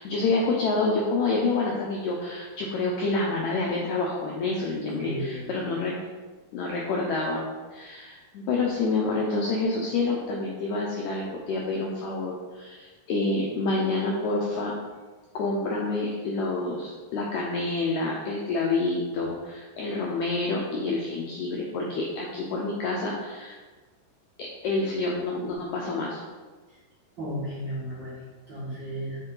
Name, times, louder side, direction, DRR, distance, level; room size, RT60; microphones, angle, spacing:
voice 1, 0.0-6.0 6.5-7.4 7.7-14.7 15.3-23.5 24.4-26.2, left 3 dB, 85° left, -2 dB, 1.6 m, -28 dB
voice 2, 5.0-5.5 27.2-28.1 28.5-29.2, equal, 45° right, -10 dB, 1.7 m, -33 dB
7.0 x 3.8 x 3.8 m, 1.3 s
omnidirectional pair, 4.1 m